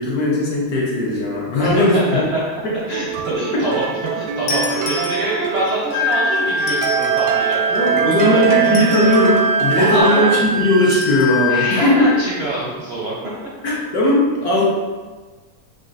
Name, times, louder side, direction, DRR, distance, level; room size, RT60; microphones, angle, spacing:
voice 1, 0.0-2.3 2.6-2.7 3.5-3.7 7.7-12.0 13.6-14.7, left 1 dB, 65° left, -5 dB, 1.3 m, -17 dB
voice 2, 1.6-2.4 2.9-7.6 8.2-8.6 9.0-9.1 9.8-10.3 11.5-13.1, right 1 dB, 60° right, -6 dB, 0.6 m, -24 dB
sound 1, 2.7-10.0, right 7 dB, 85° right, 1.2 m, -24 dB
sound 2, 4.5-5.6 6.6-7.4 8.6-9.4 10.9-11.4, left 4 dB, 85° left, 1.3 m, -31 dB
Wind instrument woodwind instrument, 5.9-12.1, right 1 dB, 50° left, 0.7 m, -22 dB
5.2 x 2.5 x 2.5 m, 1.4 s
omnidirectional pair, 1.8 m